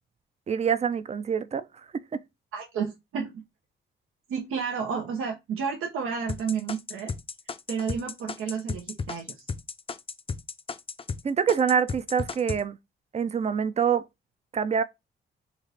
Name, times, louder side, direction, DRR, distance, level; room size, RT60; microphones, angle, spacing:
voice 1, 0.5-1.7 1.9-2.2 11.2-12.8 13.1-14.1 14.5-14.8, right 7 dB, 30° right, 0.4 m, -25 dB
voice 2, 2.5-3.4 4.3-7.1 7.7-9.3, right 6 dB, 85° right, 0.7 m, -31 dB
sound 1, 6.3-11.2 11.5-12.6, left 5 dB, 25° left, 0.5 m, -33 dB
4.0 x 2.5 x 3.2 m
cardioid pair, 85°, 21 cm